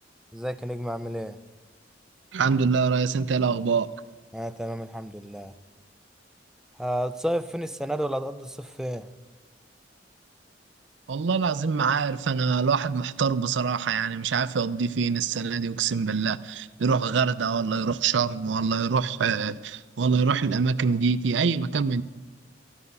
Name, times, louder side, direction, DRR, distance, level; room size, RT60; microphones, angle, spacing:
voice 1, 0.3-1.4 4.3-5.5 6.8-9.1, equal, 5° right, 0.4 m, -31 dB
voice 2, 2.3-3.9 11.1-22.0, right 5 dB, 75° right, 0.5 m, -25 dB
13.5 x 11.5 x 5.4 m
head